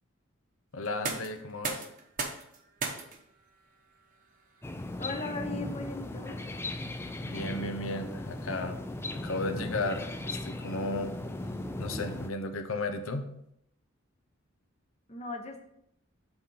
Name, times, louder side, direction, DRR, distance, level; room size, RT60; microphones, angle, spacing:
voice 1, 0.7-1.8 7.2-8.8 9.1-11.1 11.8-13.3, left 2 dB, 85° left, 7 dB, 0.8 m, -34 dB
sound 1, 0.8-12.6, right 4 dB, 40° right, 1.0 m, -44 dB
sound 2, 4.6-12.3, left 2 dB, 10° left, 0.4 m, -37 dB
voice 2, 5.0-6.4 15.1-15.6, left 3 dB, 30° left, 4 dB, 0.9 m, -38 dB
7.9 x 4.2 x 5.6 m, 0.74 s
head